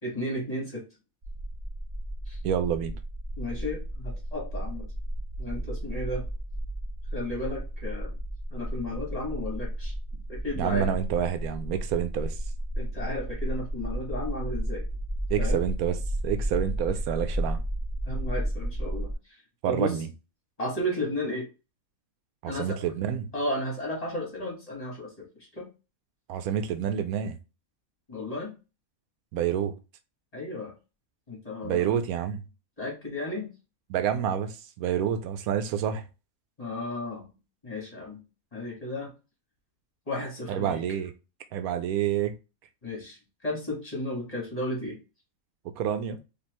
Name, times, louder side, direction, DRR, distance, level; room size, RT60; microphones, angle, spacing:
voice 1, 0.0-0.8 2.3-2.4 3.4-4.9 5.4-6.2 7.1-8.1 8.5-10.9 12.8-14.9 15.4-15.6 18.0-19.3 19.7-20.0 20.6-21.5 22.4-22.8 23.3-25.7 28.1-28.5 30.3-30.7 31.3-31.9 32.8-33.5 36.6-37.3 37.6-38.2 38.5-39.1 40.1-40.8 42.8-45.0, left 1 dB, 25° left, 1.7 m, -34 dB
sound 1, 1.2-19.1, right 1 dB, 30° right, 1.2 m, -33 dB
voice 2, 2.4-2.9 10.6-12.3 15.3-16.0 16.2-17.6 19.6-20.1 22.4-23.3 26.3-27.4 29.3-29.8 31.6-32.4 33.9-36.0 40.5-41.1 41.5-42.3 45.8-46.2, right 9 dB, 85° right, 1.1 m, -28 dB
4.3 x 2.9 x 3.0 m
omnidirectional pair, 1.5 m